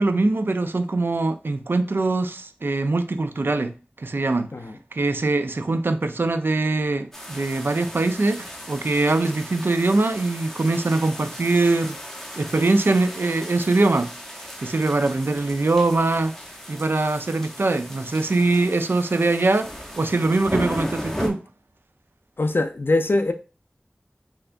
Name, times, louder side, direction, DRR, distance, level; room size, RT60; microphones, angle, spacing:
voice 1, 0.0-4.5 4.9-12.0 12.4-14.1 14.6-16.3 16.7-21.4, right 2 dB, 80° right, 0.3 m, -22 dB
sound 1, 7.1-21.3, equal, 10° left, 0.7 m, -36 dB
voice 2, 22.4-23.3, left 2 dB, 75° left, 0.4 m, -22 dB
3.2 x 2.8 x 2.5 m
wide cardioid pair, 40°, 4 cm